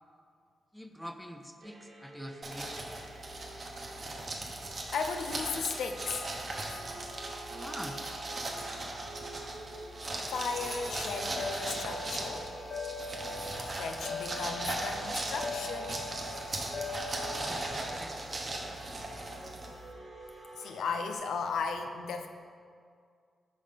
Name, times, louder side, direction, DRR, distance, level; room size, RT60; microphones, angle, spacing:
voice 1, 0.7-2.8 7.5-8.0 17.1-19.2 20.3-20.5, equal, ahead, 6 dB, 0.4 m, -46 dB
sound 1, 1.6-21.2, right 2 dB, 65° right, 1.0 m, -48 dB
sound 2, 2.4-19.9, right 2 dB, 40° right, 0.8 m, -38 dB
voice 2, 4.9-6.3 6.7-6.8 10.2-12.5 13.8-16.1 17.4-17.5 20.5-22.3, left 5 dB, 90° left, 6 dB, 0.4 m, -36 dB
sound 3, 11.3-18.0, left 4 dB, 40° left, 0.6 m, -41 dB
4.9 x 3.5 x 5.6 m, 2.2 s
cardioid pair, 85°, 0 cm